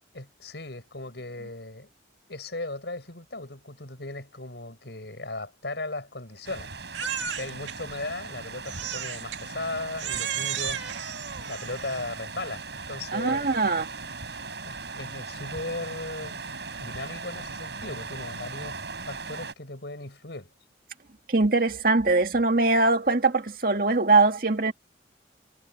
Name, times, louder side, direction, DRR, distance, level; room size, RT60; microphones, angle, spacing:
voice 1, 0.1-1.9 2.3-6.7 7.3-10.8 11.4-13.5 14.6-16.4 16.8-20.5, left 2 dB, 70° left, 6.0 m, -37 dB
sound 1, 6.4-19.5, right 4 dB, 70° right, 6.9 m, -39 dB
Crying sobbing, 6.9-7.8 8.7-9.4 10.0-12.1, right 9 dB, 85° right, 2.0 m, -33 dB
voice 2, 13.1-13.9 21.3-24.7, right 3 dB, 50° right, 2.1 m, -22 dB
head